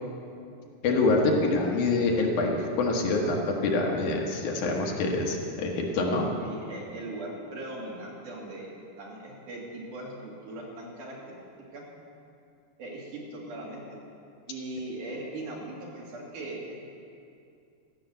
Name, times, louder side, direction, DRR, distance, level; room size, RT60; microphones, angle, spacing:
voice 1, 0.8-6.3, left 3 dB, 80° left, 0 dB, 2.8 m, -26 dB
voice 2, 6.4-8.7 9.0-11.4 11.7-11.9 12.8-14.0 14.5-16.8, right 2 dB, 80° right, -3 dB, 3.6 m, -39 dB
14.5 x 6.6 x 7.9 m, 2.5 s
omnidirectional pair, 3.5 m